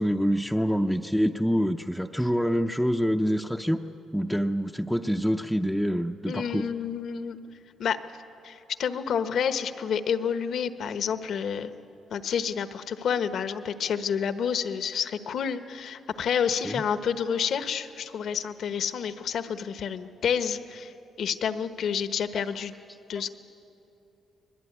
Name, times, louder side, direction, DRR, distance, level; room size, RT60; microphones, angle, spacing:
voice 1, 0.0-3.8 4.1-6.7 16.6-16.8 22.3-22.6, equal, ahead, 3 dB, 0.7 m, -26 dB
voice 2, 6.2-7.4 7.8-8.0 8.4-11.7 12.1-22.7 23.1-23.3, left 7 dB, 65° left, 10 dB, 1.2 m, -29 dB
25.5 x 21.0 x 9.6 m, 2.9 s
cardioid pair, 90°, 0 cm